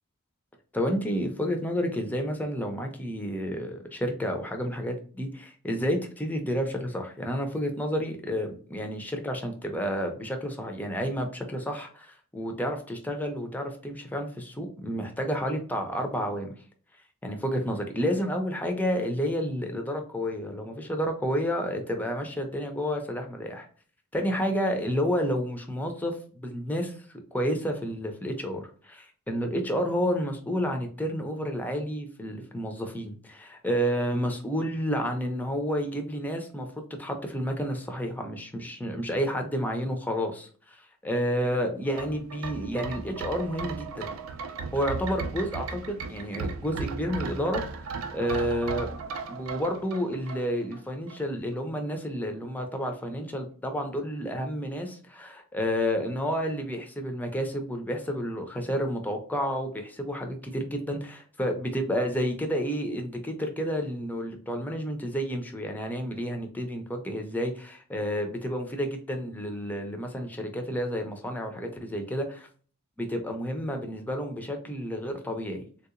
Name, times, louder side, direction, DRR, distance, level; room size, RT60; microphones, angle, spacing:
voice 1, 0.7-16.5 17.2-23.7 24.1-26.9 27.3-36.7 37.0-40.8 41.0-44.1 44.7-48.9 49.3-72.5 73.0-75.6, equal, 10° left, 4 dB, 0.5 m, -30 dB
sound 1, 41.9-50.8 51.1-51.2, right 4 dB, 70° right, 0.4 m, -36 dB
3.5 x 2.8 x 2.5 m, 0.43 s
head